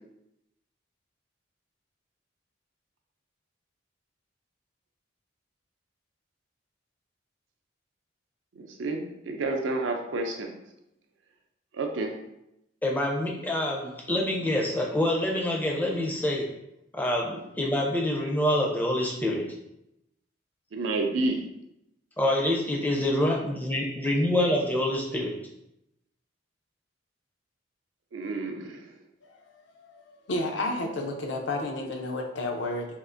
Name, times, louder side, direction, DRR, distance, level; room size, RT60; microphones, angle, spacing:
voice 1, 8.6-10.5 11.7-12.1 20.7-21.4 28.1-28.8, right 2 dB, 80° right, 4 dB, 0.5 m, -30 dB
voice 2, 12.8-16.5 16.9-19.4 22.2-25.4, left 1 dB, 10° left, -1 dB, 0.4 m, -26 dB
voice 3, 30.3-32.9, left 2 dB, 70° left, 2 dB, 0.5 m, -30 dB
3.5 x 2.4 x 2.5 m, 0.83 s
head